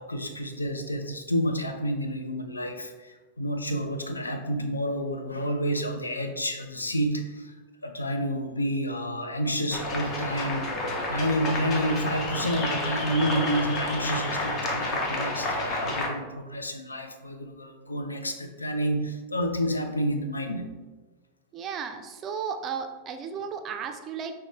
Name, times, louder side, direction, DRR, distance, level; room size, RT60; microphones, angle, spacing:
voice 1, 0.0-7.5 7.8-20.7, equal, 80° left, 6 dB, 0.4 m, -29 dB
sound 1, 9.7-16.1, left 2 dB, 30° left, 0.6 m, -30 dB
voice 2, 21.5-24.3, right 6 dB, 30° right, 6 dB, 0.4 m, -34 dB
5.0 x 2.2 x 2.9 m, 1.2 s
figure-of-eight pair, 90°, 0 cm